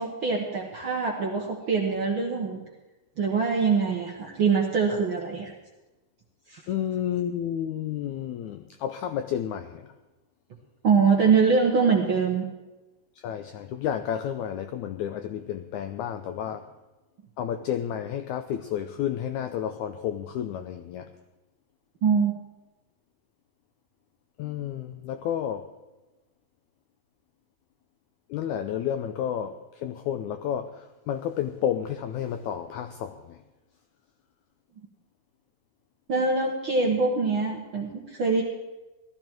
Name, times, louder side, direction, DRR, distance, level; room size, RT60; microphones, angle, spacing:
voice 1, 0.0-2.6 3.2-5.5 6.5-6.6 10.8-12.4 22.0-22.3 36.1-38.4, right 5 dB, 60° right, 1.3 m, -23 dB
voice 2, 6.7-9.9 13.2-16.7 17.4-21.1 24.4-25.7 28.3-33.4, left 9 dB, 85° left, 1.7 m, -31 dB
17.0 x 13.0 x 4.5 m
omnidirectional pair, 4.0 m